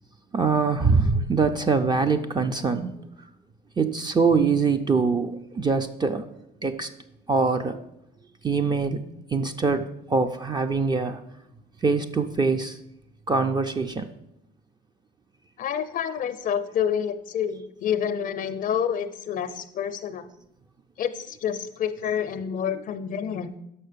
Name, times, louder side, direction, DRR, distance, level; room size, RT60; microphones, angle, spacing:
voice 1, 0.3-3.0 3.8-6.3 6.6-6.9 7.3-7.8 8.4-11.2 11.8-12.8 13.3-14.1, right 4 dB, 25° right, 7 dB, 0.5 m, -23 dB
voice 2, 15.6-20.3 21.0-23.5, left 8 dB, 55° left, 11 dB, 0.5 m, -28 dB
6.2 x 5.6 x 6.6 m, 0.82 s
cardioid pair, 110°, 17 cm